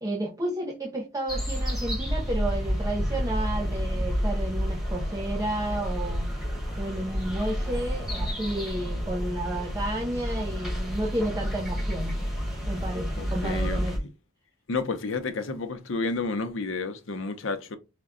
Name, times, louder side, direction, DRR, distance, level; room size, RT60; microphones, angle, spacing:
voice 1, 0.0-6.3 6.8-12.2 12.7-14.0, right 1 dB, 15° right, 0.5 m, -31 dB
sound 1, 1.3-14.0, equal, ahead, 1.2 m, -30 dB
voice 2, 13.2-14.1 14.7-17.8, left 3 dB, 75° left, 0.7 m, -31 dB
5.0 x 2.2 x 3.7 m
head